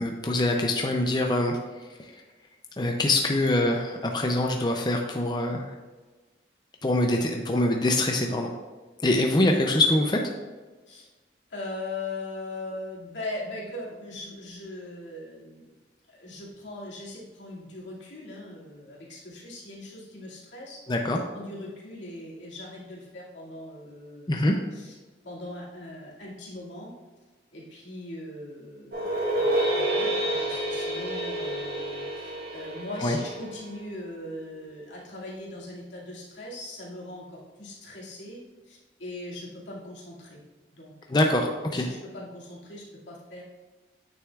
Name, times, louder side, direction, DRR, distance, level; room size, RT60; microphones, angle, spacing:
voice 1, 0.0-2.2 2.8-5.7 6.8-8.5 9.0-10.2 20.9-21.2 24.3-24.6 33.0-33.2 41.1-41.9, left 1 dB, 25° left, 2 dB, 0.5 m, -24 dB
voice 2, 11.5-15.8 16.1-20.8 21.3-25.0 25.2-26.9 27.5-40.4 40.7-43.4, left 2 dB, 85° left, -5 dB, 2.3 m, -40 dB
sound 1, 28.9-34.1, right 1 dB, 55° right, 2.0 m, -29 dB
9.0 x 6.5 x 2.4 m, 1.3 s
head